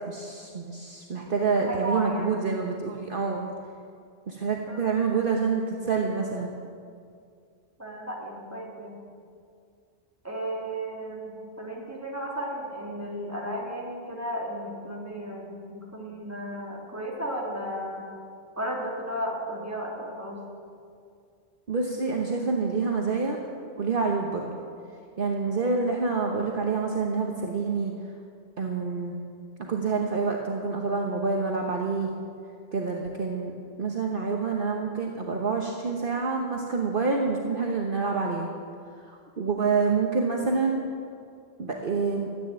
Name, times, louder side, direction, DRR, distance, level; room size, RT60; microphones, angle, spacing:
voice 1, 0.1-3.5 4.3-6.5 21.7-23.4 23.8-24.5 25.2-27.9 28.6-29.2 29.6-32.1 32.7-33.5 33.8-38.5 39.1-40.8 41.6-42.3, right 4 dB, 50° right, 1 dB, 1.2 m, -27 dB
voice 2, 1.3-2.5 4.4-4.8 7.8-9.0 10.2-18.0 18.6-20.4, equal, 15° right, -3 dB, 2.8 m, -34 dB
14.0 x 9.3 x 8.8 m, 2.3 s
omnidirectional pair, 1.1 m